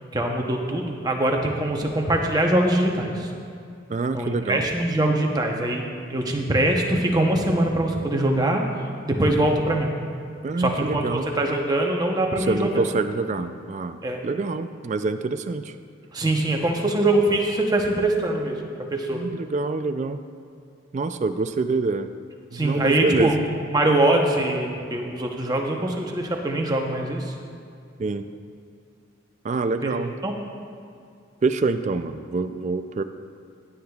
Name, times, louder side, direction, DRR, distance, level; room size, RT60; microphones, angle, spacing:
voice 1, 0.0-3.3 4.1-9.9 10.6-12.8 14.0-14.2 16.1-18.6 18.9-19.2 22.5-23.3 23.7-27.3 29.8-29.9 30.2-30.3, right 1 dB, 20° right, 1 dB, 0.8 m, -23 dB
voice 2, 3.9-4.7 10.4-11.3 12.4-14.0 14.2-15.8 19.1-20.2 20.9-22.1 22.5-23.3 28.0-28.2 29.4-30.1 31.4-33.0, right 3 dB, 35° right, 9 dB, 0.3 m, -26 dB
16.0 x 9.4 x 2.4 m, 2.4 s
head